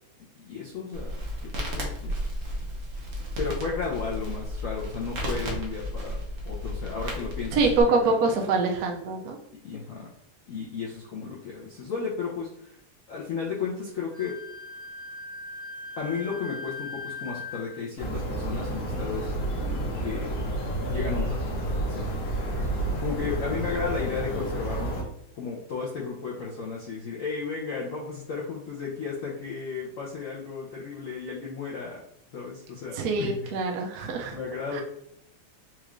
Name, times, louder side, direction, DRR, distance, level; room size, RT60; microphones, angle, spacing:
voice 1, 0.3-1.1 1.4-2.2 2.5-2.7 3.4-6.2 6.4-8.3 9.6-10.1 10.5-12.8 13.1-14.3 15.9-19.3 20.0-20.3 20.9-22.1 23.0-25.1 25.3-32.0 32.3-33.6 34.0-34.8, left 5 dB, 75° left, -4 dB, 0.7 m, -34 dB
Crackle, 0.9-7.8, equal, 55° right, 1.0 m, -33 dB
voice 2, 7.5-9.4 33.0-34.4 34.7-34.8, right 3 dB, 75° right, 2 dB, 0.8 m, -25 dB
Wind instrument woodwind instrument, 14.1-17.8, left 3 dB, 30° right, 0.4 m, -39 dB
sound 1, 18.0-25.0, right 1 dB, 55° left, 1.2 m, -30 dB
4.4 x 2.5 x 3.0 m, 0.74 s
omnidirectional pair, 2.3 m